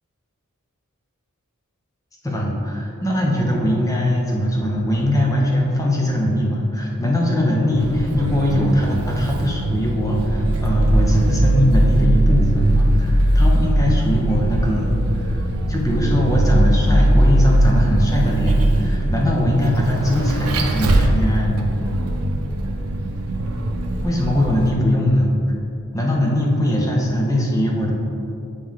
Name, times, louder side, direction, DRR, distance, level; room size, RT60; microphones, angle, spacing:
voice 1, 2.2-14.9 15.1-15.4 15.7-21.7 24.0-25.3 25.9-27.9, left 1 dB, 15° left, -2 dB, 0.8 m, -21 dB
Vehicle, 7.8-24.7, right 1 dB, 85° right, 0.6 m, -19 dB
9.1 x 3.4 x 3.7 m, 2.7 s
head